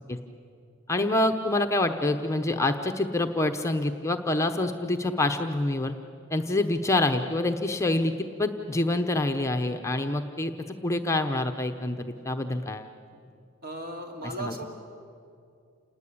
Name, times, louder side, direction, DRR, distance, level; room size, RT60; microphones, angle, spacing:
voice 1, 0.9-6.0 6.3-10.5 10.8-12.9 14.2-14.6, left 2 dB, 15° left, 5 dB, 0.9 m, -26 dB
voice 2, 13.6-14.6, right 1 dB, 45° right, 2 dB, 3.1 m, -36 dB
28.5 x 20.0 x 8.6 m, 2.5 s
head